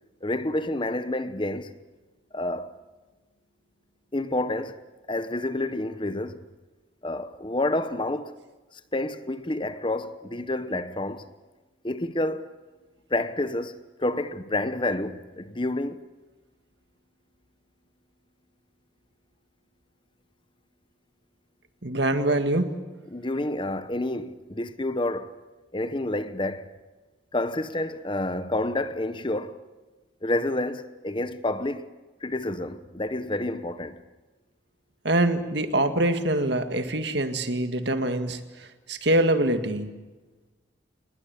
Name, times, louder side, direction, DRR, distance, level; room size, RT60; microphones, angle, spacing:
voice 1, 0.2-1.7 2.3-2.8 4.1-4.8 5.1-6.4 7.0-8.4 8.7-11.3 11.8-12.5 13.1-16.0 23.1-25.3 25.7-26.8 27.3-29.6 30.2-31.9 32.2-34.0, left 2 dB, 25° left, 1.0 m, -29 dB
voice 2, 21.8-22.8 35.0-40.0, right 1 dB, 60° right, 2.0 m, -24 dB
28.0 x 21.0 x 8.6 m
head